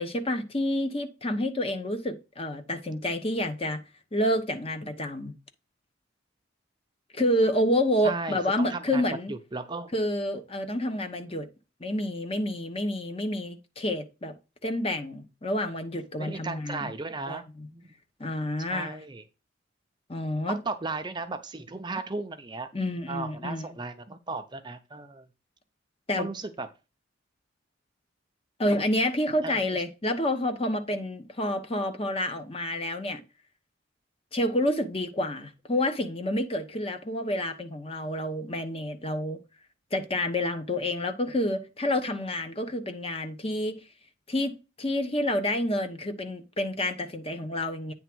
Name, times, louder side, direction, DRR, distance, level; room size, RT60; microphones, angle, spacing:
voice 1, 0.0-3.8 4.1-5.3 7.1-9.3 9.9-11.5 11.8-14.3 14.6-16.9 17.3-17.7 18.2-19.0 20.1-20.6 22.7-23.7 26.1-26.3 28.6-33.2 34.3-39.4 39.9-43.8 44.3-47.9, left 1 dB, 30° left, 1.0 m, -29 dB
voice 2, 8.0-9.0 9.3-9.9 16.2-17.5 17.7-17.9 18.6-19.2 20.5-22.7 23.1-25.3 26.2-26.7 29.4-29.8, right 3 dB, 25° right, 0.6 m, -35 dB
9.1 x 3.5 x 6.0 m
head